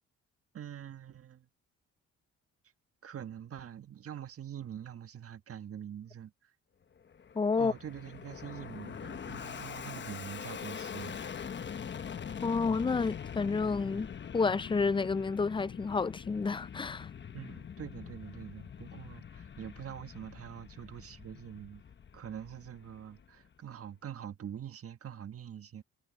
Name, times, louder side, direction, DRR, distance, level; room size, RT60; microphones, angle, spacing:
voice 1, 0.5-1.5 3.0-6.5 7.6-11.2 17.3-21.8 22.1-25.8, right 9 dB, 50° right, 1.4 m, -44 dB
Fixed-wing aircraft airplane, 7.0-23.6, left 7 dB, 40° left, 1.1 m, -43 dB
voice 2, 7.4-7.7 12.4-14.1 14.3-17.1, left 4 dB, 15° left, 0.4 m, -30 dB
cardioid pair, 90°, 30 cm